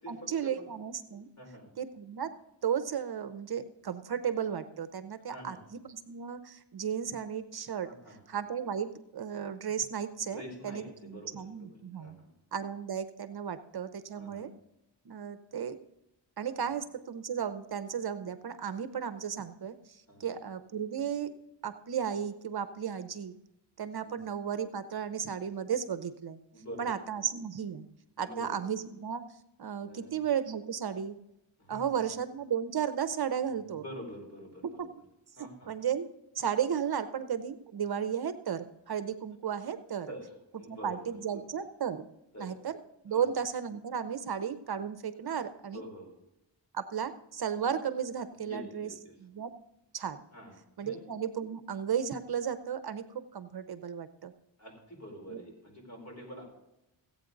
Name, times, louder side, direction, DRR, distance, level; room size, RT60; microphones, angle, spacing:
voice 1, 0.1-1.3 1.8-2.3 2.6-12.2 12.5-14.5 15.0-15.8 16.4-21.3 21.6-23.3 23.8-26.4 26.8-27.9 28.2-29.2 29.6-31.2 31.7-33.8 34.6-35.0 35.4-36.1 36.3-40.1 40.7-42.1 42.4-42.8 43.0-45.8 46.7-48.9 49.2-49.5 49.9-50.2 50.8-54.3 55.3-55.4, right 8 dB, 55° right, 11 dB, 0.8 m, -34 dB
voice 2, 1.4-1.7 5.3-5.6 7.8-8.2 10.2-11.7 12.0-12.3 14.1-14.5 20.1-20.3 24.0-24.1 26.5-26.9 28.2-28.5 29.8-30.1 31.6-32.0 33.8-34.9 35.4-35.7 40.1-40.2 40.5-41.4 42.3-42.5 43.1-43.2 45.3-45.4 45.7-46.1 48.5-49.1 50.3-50.5 50.8-51.0 54.6-56.4, equal, 35° left, 1 dB, 4.7 m, -46 dB
15.5 x 8.8 x 3.9 m, 0.88 s
wide cardioid pair, 95°, 45 cm